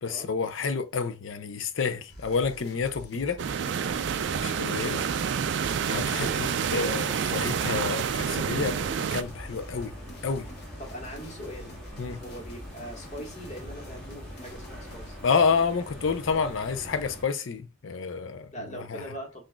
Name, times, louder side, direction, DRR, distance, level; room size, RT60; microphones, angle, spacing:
voice 1, 0.0-3.4 4.4-5.0 5.9-8.8 9.1-9.9 10.2-10.5 12.0-12.2 15.2-19.0, left 5 dB, 75° left, 0.5 m, -29 dB
sound 1, 2.1-15.1, equal, 55° left, 0.9 m, -46 dB
sound 2, 3.4-9.2, right 7 dB, 60° right, 0.3 m, -28 dB
sound 3, 3.8-17.2, equal, 5° left, 1.4 m, -44 dB
voice 2, 10.8-11.7 12.1-15.2 18.5-19.4, equal, 35° left, 1.4 m, -41 dB
6.0 x 2.6 x 2.2 m
head